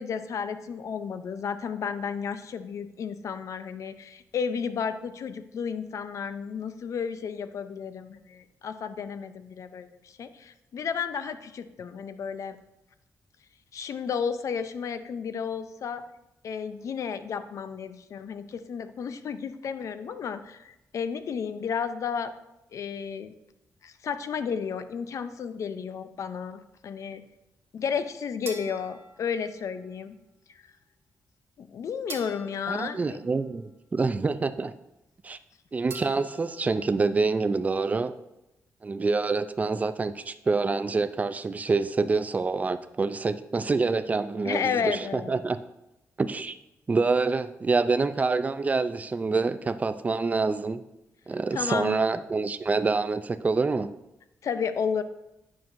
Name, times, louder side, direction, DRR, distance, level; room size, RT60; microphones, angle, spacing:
voice 1, 0.0-12.6 13.7-16.0 16.4-22.3 22.7-23.3 23.8-27.2 27.7-30.1 30.5-30.6 31.6-33.2 44.4-45.3 51.5-52.1 54.4-55.0, left 6 dB, 65° left, 11 dB, 0.5 m, -32 dB
sound 1, 28.5-30.0 32.1-33.9 35.9-37.0, right 3 dB, 45° right, 1.1 m, -45 dB
voice 2, 32.7-34.7 35.2-35.4 35.7-38.1 38.8-45.6 46.2-46.6 46.9-50.8 51.3-53.9, right 4 dB, 25° right, 11 dB, 0.4 m, -26 dB
9.3 x 6.0 x 2.6 m, 0.91 s
cardioid pair, 115°, 6 cm